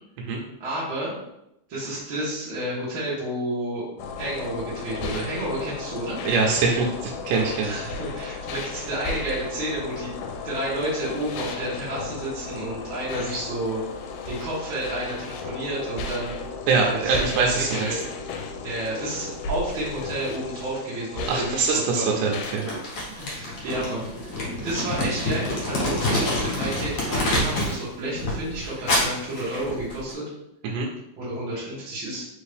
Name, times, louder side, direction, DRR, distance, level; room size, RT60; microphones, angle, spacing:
voice 1, 0.6-1.1 1.7-3.8 4.1-6.2 7.6-10.1 10.4-13.8 14.2-16.4 16.9-17.2 17.7-18.1 18.6-22.1 23.2-24.3 24.6-30.2 31.2-32.2, right 1 dB, 50° right, -10 dB, 1.6 m, -30 dB
sound 1, 4.0-22.6, left 4 dB, 85° left, 2.1 m, -35 dB
voice 2, 6.3-7.7 16.7-18.0 21.3-22.7 30.6-30.9, right 4 dB, 85° right, -1 dB, 2.1 m, -23 dB
Crumpling crinkling, 22.4-27.8 28.1-30.1, left 1 dB, 60° left, 1.8 m, -27 dB
4.9 x 2.6 x 3.3 m, 0.84 s
omnidirectional pair, 3.7 m